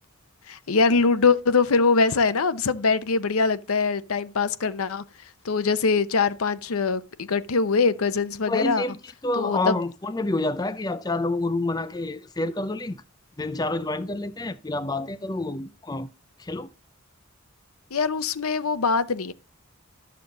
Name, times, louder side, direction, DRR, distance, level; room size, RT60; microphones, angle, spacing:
voice 1, 0.5-5.0 5.4-8.8 9.3-9.8 17.9-19.3, left 4 dB, 85° left, 0.7 m, -23 dB
voice 2, 8.5-13.0 13.4-16.1 16.4-16.7, left 2 dB, 20° left, 0.4 m, -28 dB
12.0 x 6.8 x 3.8 m
head